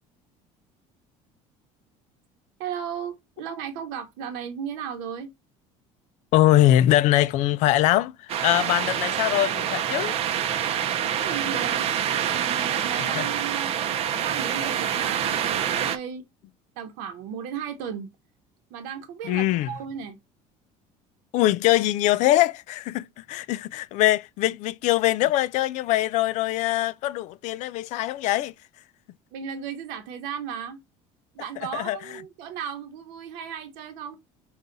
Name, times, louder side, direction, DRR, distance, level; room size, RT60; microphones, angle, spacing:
voice 1, 2.6-5.3 11.0-11.9 12.2-13.7 14.2-16.2 16.8-18.1 18.7-20.2 29.3-30.8 31.3-34.2, right 8 dB, 85° right, 0.9 m, -35 dB
voice 2, 6.3-10.1 13.1-13.3 14.2-14.3 19.2-19.7 21.3-28.5 31.7-32.0, left 14 dB, 55° left, 0.4 m, -22 dB
sound 1, 8.3-16.0, right 9 dB, 45° right, 0.6 m, -26 dB
5.4 x 2.4 x 3.8 m
cardioid pair, 145°, 14 cm